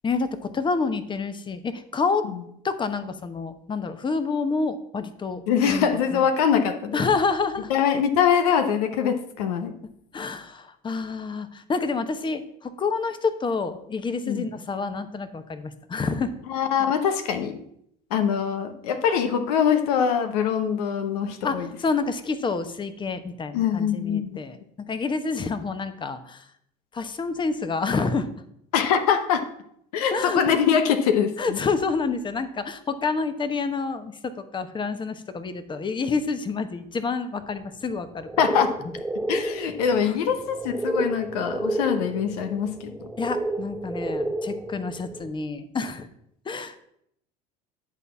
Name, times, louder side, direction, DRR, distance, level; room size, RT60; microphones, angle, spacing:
voice 1, 0.0-2.2 2.6-6.2 6.9-7.7 10.1-16.3 16.8-16.9 21.4-24.6 24.9-26.4 26.9-28.3 30.1-30.4 31.4-38.3 40.0-40.2 43.2-46.1 46.5-46.8, left 4 dB, 25° left, 10 dB, 1.0 m, -28 dB
voice 2, 5.5-7.0 7.7-9.7 14.2-14.5 16.5-17.6 18.1-21.7 23.5-24.4 28.7-29.4 29.9-31.6 38.4-38.7 39.3-42.9, left 7 dB, 85° left, 9 dB, 1.0 m, -23 dB
sound 1, 37.9-45.3, right 1 dB, 5° right, 0.4 m, -31 dB
11.0 x 4.1 x 6.9 m, 0.72 s
supercardioid pair, 90°, 19 cm